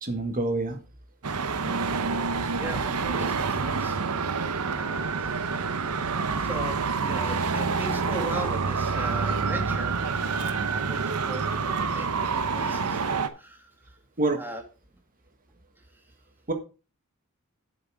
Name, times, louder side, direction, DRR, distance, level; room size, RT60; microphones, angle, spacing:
voice 1, 0.0-0.8 14.2-14.4 16.5-16.6, right 2 dB, 40° right, 7 dB, 1.7 m, -26 dB
Traffic noise roadway noise, 1.2-13.3, right 5 dB, 85° right, 0.9 m, -27 dB
voice 2, 2.5-4.4 4.8-5.3 6.4-14.0 14.4-14.6, right 1 dB, 10° right, 3 dB, 2.2 m, -39 dB
8.0 x 7.5 x 4.8 m, 0.32 s
head